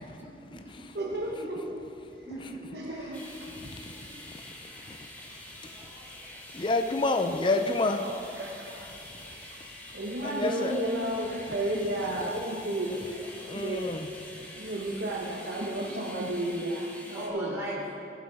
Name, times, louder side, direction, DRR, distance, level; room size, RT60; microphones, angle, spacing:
voice 1, 0.2-0.9 1.3-1.5 2.2-2.8 3.3-3.4 5.6-6.0 17.1-17.8, right 1 dB, 15° right, -7 dB, 3.3 m, -39 dB
voice 2, 0.9-1.8 2.7-3.3 4.1-4.2 7.6-8.9 9.5-9.6 9.9-13.9 14.5-17.5, right 1 dB, 70° right, -2 dB, 1.0 m, -33 dB
sound 1, 3.1-17.3, left 1 dB, 10° left, 1.5 m, -46 dB
voice 3, 3.6-3.9 4.3-4.5 4.9-5.1 5.6-5.8 6.5-8.1 9.2-9.4 10.2-10.7 13.4-14.1, left 2 dB, 30° left, 6 dB, 0.4 m, -29 dB
17.0 x 7.2 x 4.8 m, 2.6 s
head